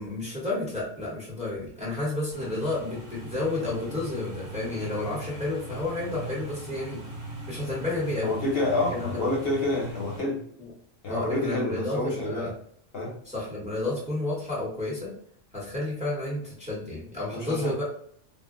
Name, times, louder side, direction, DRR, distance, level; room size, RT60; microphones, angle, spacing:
voice 1, 0.0-7.0 7.5-8.3 8.9-9.2 10.6-10.7 11.1-12.5 13.2-15.1 15.5-17.8, left 2 dB, 5° right, -6 dB, 0.9 m, -31 dB
sound 1, 2.3-10.2, right 1 dB, 55° right, 1.1 m, -40 dB
voice 2, 8.2-10.4 11.0-12.5 12.9-13.2 17.3-17.7, left 2 dB, 60° left, -3 dB, 0.8 m, -28 dB
2.3 x 2.1 x 3.6 m, 0.62 s
omnidirectional pair, 1.2 m